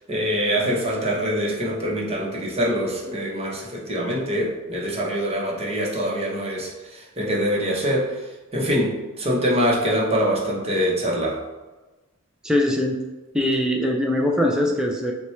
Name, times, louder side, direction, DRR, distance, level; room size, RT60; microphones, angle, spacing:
voice 1, 0.1-11.4, equal, 30° right, -3 dB, 0.9 m, -24 dB
voice 2, 12.4-13.0 13.3-15.1, left 1 dB, 5° right, 0 dB, 0.3 m, -21 dB
5.8 x 2.2 x 3.1 m, 1.2 s
head